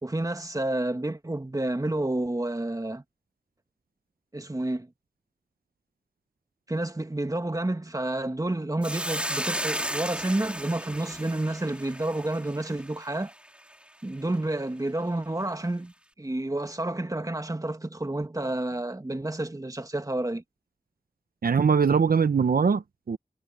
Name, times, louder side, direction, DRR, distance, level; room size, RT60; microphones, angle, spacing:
voice 1, 0.0-3.0 4.3-4.9 6.7-13.3 14.0-15.9 16.2-20.4, right 1 dB, 20° right, 1.7 m, -30 dB
Hiss, 8.8-13.3, equal, 5° right, 2.8 m, -34 dB
voice 2, 21.4-23.2, right 6 dB, 75° right, 0.7 m, -22 dB
wide cardioid pair, 70°, 15 cm